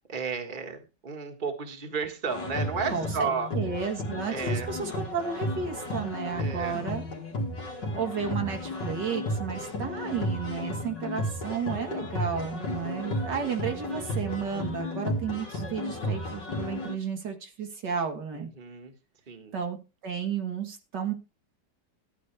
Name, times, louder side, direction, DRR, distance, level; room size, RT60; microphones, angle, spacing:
voice 1, 0.1-3.5 4.3-4.7 6.4-6.8 18.3-18.9 19.3-19.5, right 5 dB, 30° right, 4 dB, 1.7 m, -33 dB
sound 1, 2.3-17.0, left 1 dB, 75° left, 2.7 m, -33 dB
voice 2, 2.9-7.1 8.0-18.5 19.5-19.8 20.0-21.1, right 6 dB, 70° right, 4 dB, 2.3 m, -32 dB
13.5 x 10.0 x 3.3 m, 0.29 s
omnidirectional pair, 1.9 m